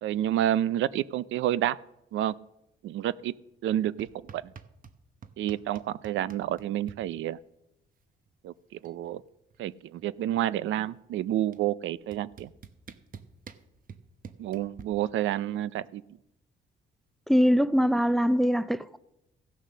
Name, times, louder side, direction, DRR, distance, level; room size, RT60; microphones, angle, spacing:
voice 1, 0.0-1.8 2.1-2.3 2.8-3.3 3.6-4.1 4.3-4.4 5.4-7.4 8.4-8.5 8.8-9.2 9.6-12.5 14.4-16.0, right 12 dB, 75° right, 0.4 m, -29 dB
sound 1, 4.0-5.0 5.2-7.0 8.3-8.4 8.6-9.0 9.3-10.6 11.5-11.6 12.1-14.8, right 6 dB, 45° right, 0.9 m, -47 dB
voice 2, 17.3-19.0, equal, ahead, 0.4 m, -23 dB
15.5 x 6.5 x 6.4 m
cardioid pair, 90°, 20 cm